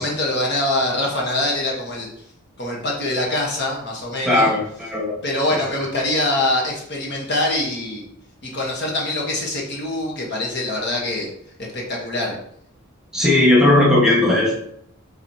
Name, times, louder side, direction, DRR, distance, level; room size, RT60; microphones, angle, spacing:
voice 1, 0.0-2.1 2.6-4.5 5.2-8.0 8.4-11.3 11.7-12.4, left 1 dB, 50° left, -1 dB, 1.3 m, -24 dB
voice 2, 4.2-5.2 5.5-5.6 13.1-14.5, left 1 dB, 5° right, -4 dB, 1.4 m, -17 dB
7.9 x 4.1 x 2.9 m, 0.70 s
head